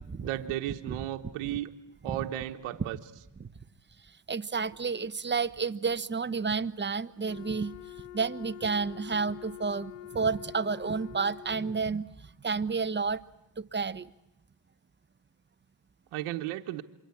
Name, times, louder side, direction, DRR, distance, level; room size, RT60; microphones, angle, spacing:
voice 1, 0.2-1.7 2.0-3.0 16.1-16.8, right 14 dB, 80° right, 5 dB, 1.3 m, -34 dB
voice 2, 4.0-7.7 8.1-13.2 13.6-14.1, right 5 dB, 20° right, 12 dB, 1.1 m, -31 dB
Wind instrument woodwind instrument, 7.2-11.9, left 13 dB, 85° left, 1.1 m, -45 dB
27.0 x 23.5 x 8.5 m, 0.89 s
supercardioid pair, 75°, 49 cm